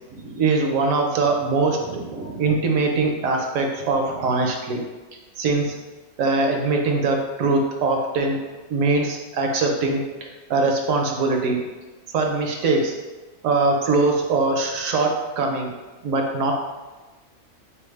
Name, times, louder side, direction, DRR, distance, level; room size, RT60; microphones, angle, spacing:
voice 1, 0.1-4.8 5.4-5.8 6.2-8.4 8.7-11.6 12.1-12.9 13.4-15.1 15.4-15.7 16.0-16.5, right 3 dB, 70° right, 2 dB, 1.0 m, -22 dB
4.2 x 3.5 x 3.2 m, 1.2 s
omnidirectional pair, 1.5 m